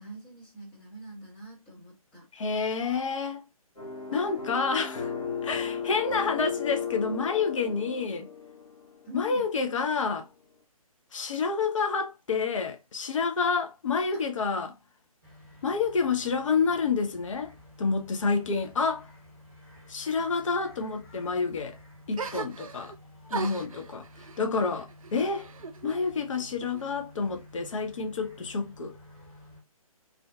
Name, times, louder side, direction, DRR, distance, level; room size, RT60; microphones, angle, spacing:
voice 1, 0.0-2.3 4.1-4.3 5.4-5.5 5.8-5.9 9.0-9.4 14.1-14.2, right 1 dB, 5° left, 0.3 m, -45 dB
voice 2, 2.3-3.5 4.1-5.1 5.4-8.3 9.1-10.3 11.1-14.8 15.6-19.1 19.9-21.8 22.1-22.9 23.3-25.5 25.8-28.9, left 5 dB, 60° left, 0.5 m, -29 dB
sound 1, 3.8-9.0, left 6 dB, 75° left, 0.9 m, -35 dB
sound 2, 15.2-29.6, left 1 dB, 25° left, 1.4 m, -52 dB
sound 3, 22.1-23.0 23.3-26.0 26.3-27.2, right 5 dB, 65° right, 0.4 m, -39 dB
2.5 x 2.2 x 2.2 m
figure-of-eight pair, 140°, 19 cm